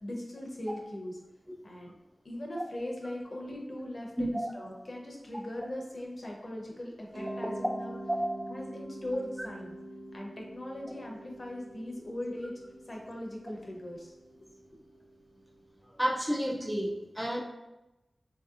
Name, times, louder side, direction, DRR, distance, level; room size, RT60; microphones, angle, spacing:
voice 1, 0.0-1.2 1.6-1.9 2.2-8.0 8.5-9.7 10.1-12.5 12.9-14.2, left 1 dB, 55° left, -1 dB, 0.7 m, -39 dB
voice 2, 4.2-4.5 8.2-8.4 16.0-17.4, equal, 10° right, 0 dB, 0.4 m, -30 dB
Mallet percussion, 7.1-15.9, right 1 dB, 75° right, 1.0 m, -46 dB
3.2 x 2.7 x 2.3 m, 0.99 s
cardioid pair, 45°, 0 cm